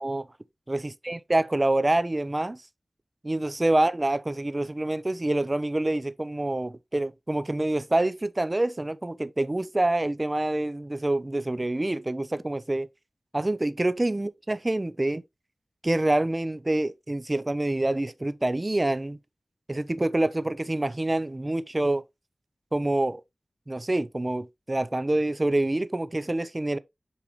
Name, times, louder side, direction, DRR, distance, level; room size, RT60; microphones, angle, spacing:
voice 1, 0.7-2.6 3.2-12.9 13.3-15.2 15.8-19.2 19.7-22.0 22.7-23.2 23.7-26.8, right 1 dB, 35° right, 0.5 m, -26 dB
7.0 x 4.6 x 3.1 m
cardioid pair, 45°, 0 cm